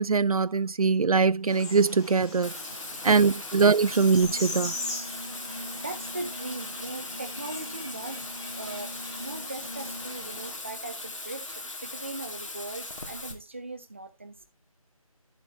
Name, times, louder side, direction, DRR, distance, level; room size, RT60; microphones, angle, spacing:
voice 1, 0.0-2.5 3.0-4.7, right 5 dB, 75° right, 0.4 m, -22 dB
sound 1, 1.5-10.6, left 2 dB, 10° left, 1.8 m, -41 dB
voice 2, 2.2-3.4 5.1-8.2 8.5-14.4, right 2 dB, 20° right, 0.7 m, -40 dB
Bathtub (filling or washing), 2.4-13.3, left 2 dB, 55° left, 2.5 m, -39 dB
Brass instrument, 3.9-10.3, equal, 30° left, 3.2 m, -44 dB
12.5 x 7.2 x 2.9 m
figure-of-eight pair, 165°, 19 cm